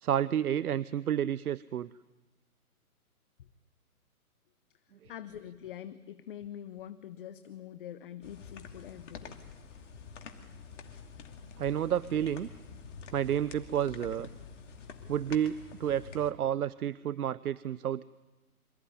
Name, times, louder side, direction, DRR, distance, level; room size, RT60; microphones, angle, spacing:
voice 1, 0.0-1.9 5.0-5.1 11.6-12.5 13.1-14.3 15.1-18.0, right 10 dB, 75° right, 19 dB, 0.7 m, -30 dB
voice 2, 5.1-9.4, left 10 dB, 35° left, 13 dB, 0.9 m, -45 dB
sound 1, 8.2-16.3, left 5 dB, 50° left, 2.8 m, -47 dB
26.5 x 15.0 x 9.9 m, 1.2 s
hypercardioid pair, 145°, 45 cm